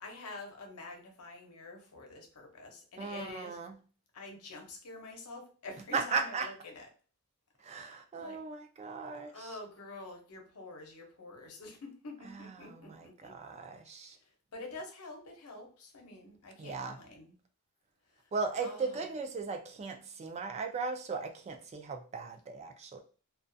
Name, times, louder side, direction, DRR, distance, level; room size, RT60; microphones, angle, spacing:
voice 1, 0.0-3.6 4.1-6.9 7.7-8.4 9.3-13.4 14.2-17.3 18.1-18.3 18.6-19.0, left 2 dB, 85° left, 0.7 m, -47 dB
voice 2, 3.0-3.7 5.9-6.5 7.6-9.5 12.3-14.2 16.6-17.0 18.3-23.0, right 4 dB, 30° right, 0.3 m, -37 dB
2.3 x 2.3 x 2.5 m
head